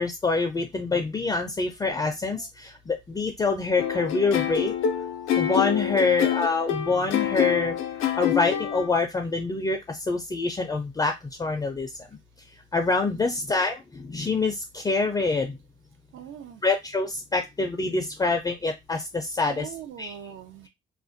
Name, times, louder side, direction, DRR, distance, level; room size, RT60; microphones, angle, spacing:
voice 1, 0.0-4.7 5.4-7.7 8.2-11.1 11.4-11.9 12.7-15.5 16.6-19.7 20.0-20.1, left 3 dB, 20° left, 0.4 m, -26 dB
sound 1, 3.8-8.9, left 9 dB, 90° left, 0.4 m, -26 dB
voice 2, 13.1-13.4 16.1-16.6 19.5-20.7, right 10 dB, 75° right, 0.5 m, -42 dB
2.4 x 2.0 x 2.5 m
cardioid pair, 90°, 20 cm